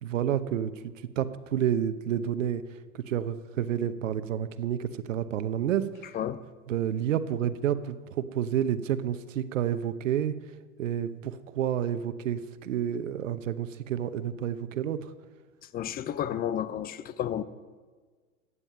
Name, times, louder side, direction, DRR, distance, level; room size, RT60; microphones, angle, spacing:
voice 1, 0.0-5.9 6.7-10.3 10.8-15.1, right 10 dB, 70° right, 0.9 m, -30 dB
voice 2, 15.7-17.4, left 10 dB, 25° left, 0.6 m, -31 dB
15.0 x 9.9 x 5.7 m
hypercardioid pair, 100°, 39 cm